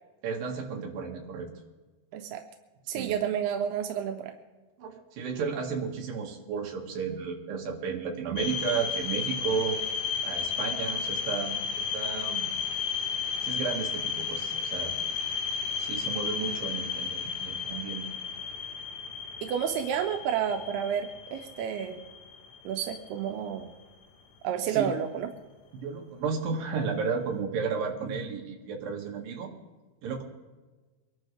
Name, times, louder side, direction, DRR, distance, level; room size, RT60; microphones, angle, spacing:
voice 1, 0.2-1.5 2.9-3.2 4.8-9.8 10.2-11.6 11.9-12.5 13.4-15.0 15.8-18.1 24.7-24.9 25.8-29.5 30.0-30.2, right 5 dB, 65° right, 1 dB, 3.6 m, -33 dB
voice 2, 2.1-2.4 2.9-4.4 19.4-22.0 22.6-23.7 24.4-25.3, right 8 dB, 90° right, 5 dB, 2.8 m, -30 dB
sound 1, 8.4-23.3, left 6 dB, 85° left, 3.4 m, -33 dB
24.0 x 12.0 x 3.4 m, 1.3 s
omnidirectional pair, 4.5 m